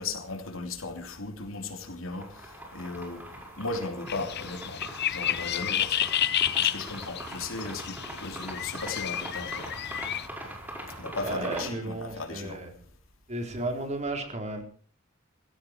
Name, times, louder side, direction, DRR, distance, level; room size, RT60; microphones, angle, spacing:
voice 1, 0.0-2.3 2.7-3.2 3.6-4.8 5.1-6.1 6.6-9.7 11.0-12.6, left 3 dB, 90° left, 3.1 m, -36 dB
sound 1, 2.1-11.7, right 1 dB, 10° right, 5.1 m, -42 dB
sound 2, 4.1-10.3, left 11 dB, 55° left, 0.8 m, -31 dB
voice 2, 11.2-12.7 13.3-14.6, right 2 dB, 35° right, 4.0 m, -33 dB
17.0 x 16.0 x 4.5 m
head